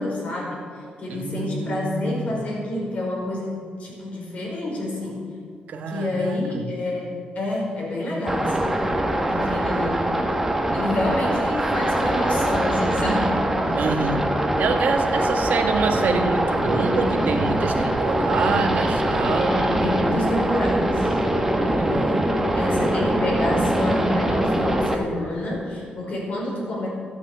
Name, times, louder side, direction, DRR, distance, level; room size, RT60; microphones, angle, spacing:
voice 1, 0.0-5.2 5.9-10.2 10.7-13.8 19.2-21.2 21.6-26.9, left 1 dB, 55° left, -2 dB, 4.9 m, -28 dB
voice 2, 1.1-2.2 5.7-6.6 13.7-19.6 21.6-22.2, right 4 dB, 65° right, 5 dB, 1.5 m, -26 dB
sound 1, 8.3-24.9, right 1 dB, 10° right, 1.4 m, -23 dB
14.5 x 9.6 x 9.0 m, 2.3 s
wide cardioid pair, 155°, 3 cm